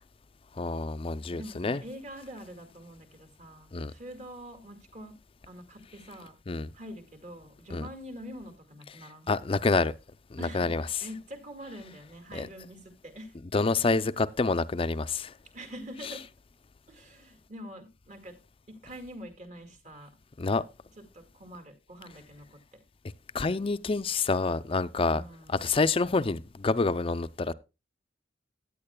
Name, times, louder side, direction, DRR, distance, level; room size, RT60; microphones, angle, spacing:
voice 1, 0.6-1.8 3.7-3.9 6.5-6.7 7.7-7.9 9.3-9.9 10.3-10.8 12.3-12.5 13.5-15.3 20.4-20.6 23.3-25.2 25.5-27.5, left 3 dB, 30° left, 0.5 m, -27 dB
voice 2, 1.3-5.2 5.5-6.4 6.7-9.3 10.4-13.3 15.5-16.2 16.9-18.4 18.7-20.1 21.1-22.6 25.1-25.8, equal, 40° right, 2.1 m, -45 dB
15.5 x 9.5 x 2.3 m
head